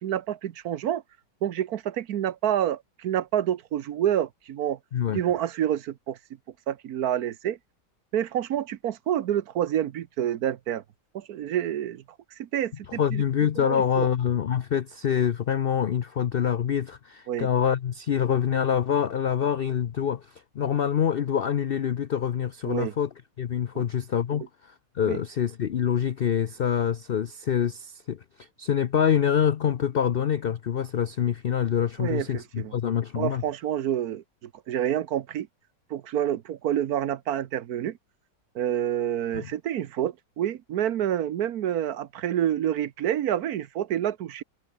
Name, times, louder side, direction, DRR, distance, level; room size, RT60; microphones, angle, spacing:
voice 1, 0.0-1.0 1.4-4.8 5.1-6.2 6.7-7.6 8.1-10.8 11.1-12.0 12.4-13.2 13.6-14.1 17.3-17.5 22.6-22.9 23.7-23.9 25.0-25.2 32.0-32.7 33.2-35.5 35.9-38.0 38.5-44.4, right 11 dB, 65° right, 1.3 m, -28 dB
voice 2, 13.0-23.1 23.4-33.4 39.3-39.4, left 8 dB, 90° left, 0.5 m, -26 dB
omnidirectional pair, 1.8 m